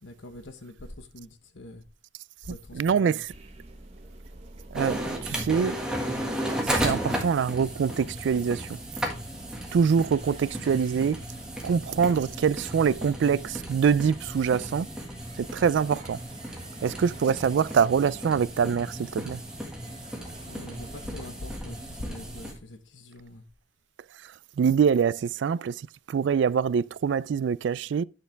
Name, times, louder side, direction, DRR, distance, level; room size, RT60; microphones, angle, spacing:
voice 1, 0.0-1.8 2.4-3.2 11.7-12.1 20.4-23.4, left 1 dB, 85° left, 1.3 m, -43 dB
voice 2, 2.5-3.3 4.7-5.8 6.6-8.8 9.7-11.2 11.6-14.9 15.4-16.2 16.8-19.4 24.6-28.0, right 6 dB, 75° right, 0.3 m, -24 dB
sound 1, 3.3-22.6, right 1 dB, 35° right, 1.2 m, -48 dB
sound 2, 4.7-22.5, equal, 5° right, 1.6 m, -35 dB
9.5 x 6.6 x 3.3 m
head